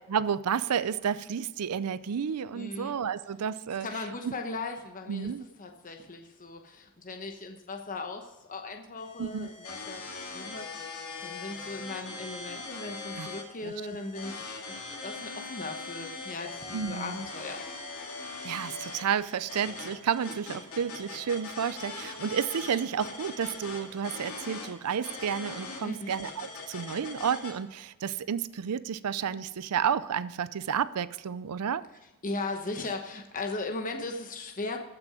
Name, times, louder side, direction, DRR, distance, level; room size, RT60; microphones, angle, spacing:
voice 1, 0.1-3.9 4.2-4.3 5.1-5.4 9.2-9.5 13.2-13.3 13.6-13.7 16.7-17.2 18.4-31.8, right 7 dB, 90° right, 16 dB, 0.5 m, -31 dB
voice 2, 2.5-2.9 3.8-5.3 5.6-10.7 11.2-17.6 25.8-26.1 32.2-34.8, left 3 dB, 35° left, 3 dB, 1.0 m, -38 dB
sound 1, 9.0-27.5, left 3 dB, 70° left, 2.4 m, -41 dB
15.0 x 6.1 x 4.9 m, 1.1 s
head